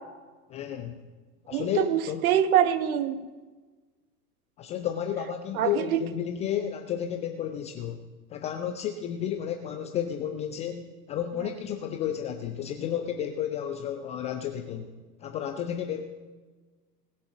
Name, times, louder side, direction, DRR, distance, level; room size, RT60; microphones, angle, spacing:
voice 1, 0.5-1.0 1.5-2.2 4.6-8.0 8.3-14.9 15.2-16.0, left 9 dB, 15° left, 6 dB, 0.4 m, -32 dB
voice 2, 1.5-3.2 5.5-6.0, right 10 dB, 55° right, 10 dB, 1.4 m, -24 dB
19.0 x 6.8 x 5.9 m, 1.3 s
figure-of-eight pair, 90°, 50 cm